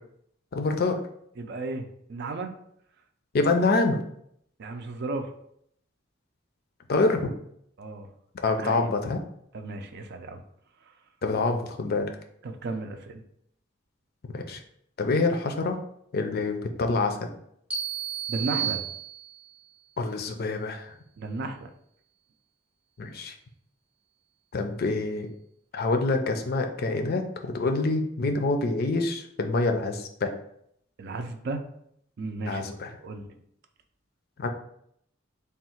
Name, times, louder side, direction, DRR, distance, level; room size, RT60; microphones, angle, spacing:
voice 1, 0.5-1.0 3.3-4.0 6.9-7.3 8.4-9.2 11.2-12.1 14.3-14.6 15.0-15.8 16.1-17.3 20.0-20.9 23.0-23.3 24.5-25.3 25.7-30.3 32.4-32.9 34.4-34.5, left 3 dB, 55° left, 5 dB, 0.5 m, -26 dB
voice 2, 1.4-2.5 4.6-5.3 7.8-8.1 8.6-8.9 9.5-10.4 12.4-13.2 18.3-18.8 21.2-21.7 31.0-31.6 32.2-32.8 33.0-33.3, right 3 dB, 55° right, 6 dB, 0.5 m, -34 dB
sound 1, 17.7-19.6, right 9 dB, 5° right, 0.6 m, -32 dB
3.5 x 2.3 x 4.3 m, 0.70 s
head